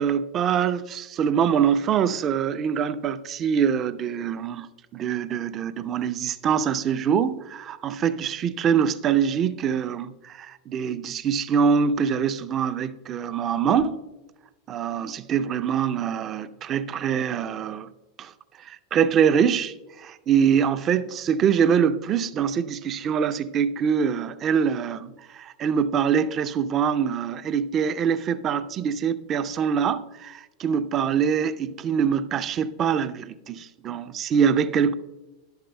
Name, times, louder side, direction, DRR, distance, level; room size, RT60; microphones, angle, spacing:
voice 1, 0.0-14.0 14.7-17.9 18.2-18.3 18.6-34.9, right 7 dB, 35° right, 0.5 m, -24 dB
11.5 x 11.5 x 2.2 m
figure-of-eight pair, 85°, 0 cm